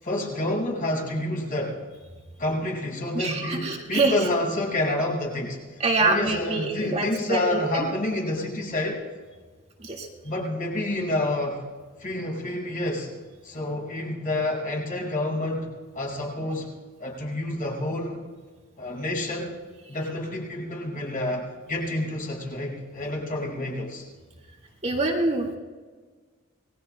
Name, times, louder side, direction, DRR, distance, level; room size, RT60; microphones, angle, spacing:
voice 1, 0.0-1.8 2.4-9.0 10.2-11.6 12.0-13.1 13.4-15.7 15.9-16.7 17.0-18.2 18.8-19.5 19.9-24.1, left 1 dB, 40° left, -2 dB, 5.6 m, -28 dB
voice 2, 3.1-4.3 5.8-7.9 9.8-10.1 24.8-25.6, right 2 dB, 30° right, -1 dB, 1.9 m, -25 dB
28.0 x 20.0 x 2.2 m, 1.4 s
head